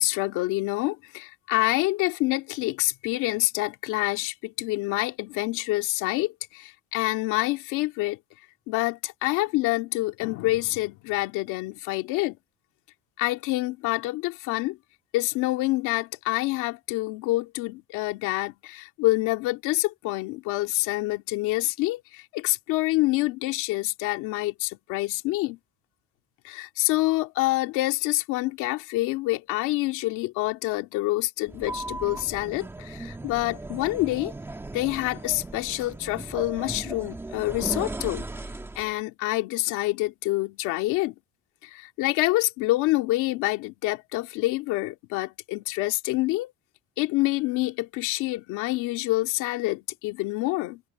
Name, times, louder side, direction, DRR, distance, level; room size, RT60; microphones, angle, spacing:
voice 1, 0.0-8.2 8.7-12.4 13.2-14.8 15.1-25.6 26.4-34.3 34.7-38.3 38.8-41.2 41.6-46.5 47.0-50.8, left 19 dB, 85° left, 2.3 m, -27 dB
sound 1, 31.5-39.0, right 2 dB, 10° right, 1.5 m, -37 dB
cardioid pair, 155°, 30 cm